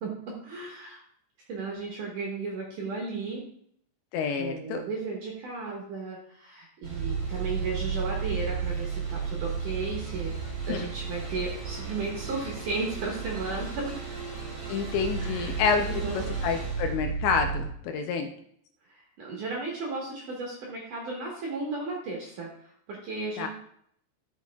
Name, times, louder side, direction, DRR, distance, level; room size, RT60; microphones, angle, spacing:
voice 1, 0.0-1.0 1.5-3.5 4.3-10.3 10.6-13.9 15.2-15.5 15.9-16.3 18.9-22.5 22.9-23.5, right 3 dB, 65° right, -2 dB, 2.2 m, -35 dB
voice 2, 4.1-4.8 10.7-10.9 14.7-18.3 23.4-23.5, left 5 dB, 80° left, 5 dB, 2.7 m, -28 dB
sound 1, 6.8-17.7, right 5 dB, 35° right, 2.3 m, -33 dB
12.5 x 6.3 x 2.3 m, 0.66 s
omnidirectional pair, 5.4 m